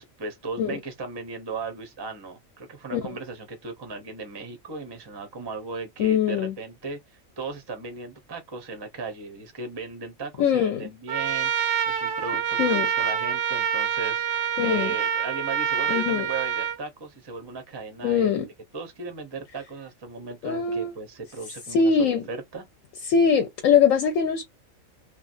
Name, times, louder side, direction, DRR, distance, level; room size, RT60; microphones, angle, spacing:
voice 1, 0.0-18.4 18.7-22.6, right 4 dB, 30° right, 0.5 m, -37 dB
voice 2, 6.0-6.5 10.4-10.9 12.6-12.9 14.6-14.9 15.9-16.3 18.0-18.5 20.4-21.0 21.7-22.3 23.0-24.4, left 6 dB, 70° left, 1.0 m, -22 dB
Trumpet, 11.1-16.8, right 8 dB, 65° right, 0.8 m, -26 dB
3.1 x 2.4 x 2.5 m
omnidirectional pair, 1.5 m